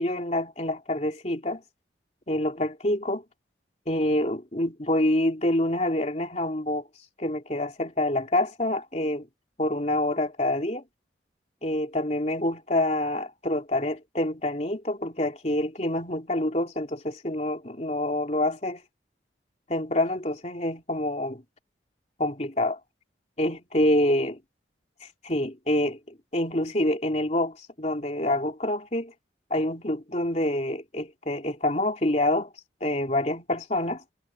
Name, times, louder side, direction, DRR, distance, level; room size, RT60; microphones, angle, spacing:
voice 1, 0.0-1.6 2.3-3.2 3.9-6.9 7.2-9.3 9.6-10.8 11.6-18.8 19.7-21.4 22.2-22.8 23.4-24.3 25.2-29.1 29.5-32.5 32.8-34.0, left 1 dB, 40° left, 3.2 m, -27 dB
head